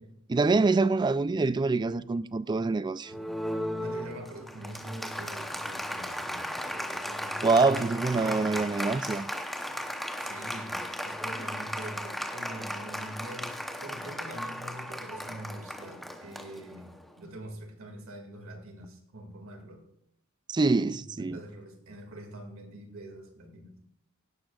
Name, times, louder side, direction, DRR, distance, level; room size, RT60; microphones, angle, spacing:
voice 1, 0.3-3.1 7.4-9.3 20.5-21.4, right 3 dB, 20° right, 0.3 m, -25 dB
Applause, 3.0-17.1, equal, ahead, 0.8 m, -36 dB
voice 2, 3.8-7.8 8.1-8.7 10.2-19.9 20.9-23.8, right 1 dB, 65° right, 2.2 m, -44 dB
16.5 x 11.5 x 2.4 m
head